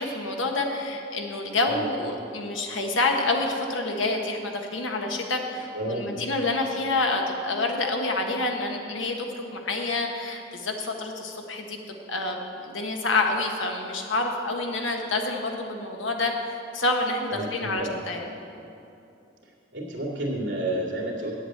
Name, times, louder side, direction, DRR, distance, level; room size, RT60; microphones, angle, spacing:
voice 1, 0.0-18.3, left 2 dB, 90° left, 2 dB, 1.3 m, -28 dB
voice 2, 5.7-6.2 17.3-18.0 19.7-21.4, right 1 dB, 75° right, -2 dB, 2.5 m, -30 dB
8.7 x 8.0 x 7.8 m, 2.7 s
head